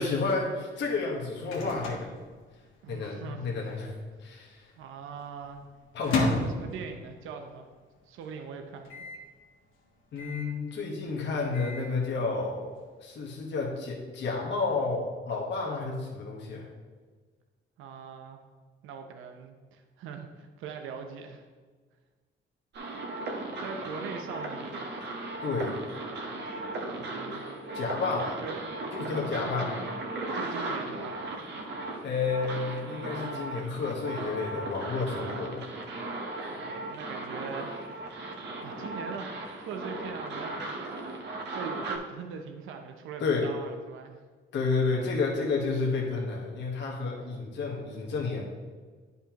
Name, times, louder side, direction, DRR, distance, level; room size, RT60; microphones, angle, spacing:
voice 1, 0.0-2.1 2.9-4.7 5.9-6.5 10.1-12.7 13.0-16.7 25.4-25.8 27.7-28.4 28.9-29.8 32.0-35.7 43.2-43.5 44.5-48.4, left 4 dB, 65° left, -2 dB, 1.3 m, -31 dB
Microwave oven, 0.9-3.1 3.3-3.4 3.6-4.2 4.7-7.4 7.8-7.9 8.1-8.2 8.8-9.3 10.2-10.6 11.2-11.9, left 3 dB, 90° left, 1.5 m, -34 dB
voice 2, 2.8-3.7 4.8-5.6 6.3-7.7 8.0-9.1 17.8-18.4 18.8-21.4 23.6-24.9 26.8-27.5 28.4-28.6 29.4-29.9 30.3-31.3 36.5-37.7 38.6-41.0 41.5-44.2, right 6 dB, 85° right, 5 dB, 0.7 m, -42 dB
sound 1, 22.7-42.0, right 2 dB, 60° right, 1.3 m, -37 dB
9.9 x 5.5 x 3.0 m, 1.5 s
cardioid pair, 90°, 20 cm